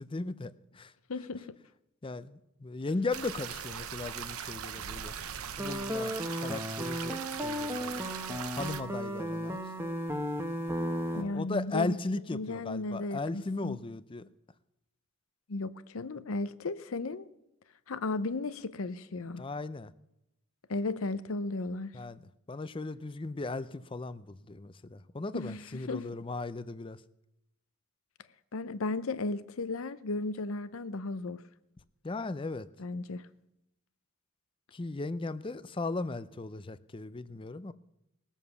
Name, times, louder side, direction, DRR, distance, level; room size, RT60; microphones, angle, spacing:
voice 1, 0.0-0.9 2.0-5.1 5.6-6.1 6.4-8.0 8.5-9.6 11.1-14.3 19.4-19.9 21.9-22.2 22.5-27.0 32.0-32.7 34.7-37.7, left 3 dB, 25° left, 0.5 m, -37 dB
voice 2, 1.1-1.6 11.1-12.0 12.3-13.8 15.5-17.3 17.9-19.4 20.7-21.9 25.3-26.1 28.5-31.4 32.8-33.3, left 2 dB, 75° left, 0.7 m, -35 dB
sound 1, 3.1-8.8, right 8 dB, 90° right, 0.8 m, -40 dB
sound 2, 5.6-11.2, equal, 10° right, 1.0 m, -34 dB
19.5 x 7.3 x 6.8 m
head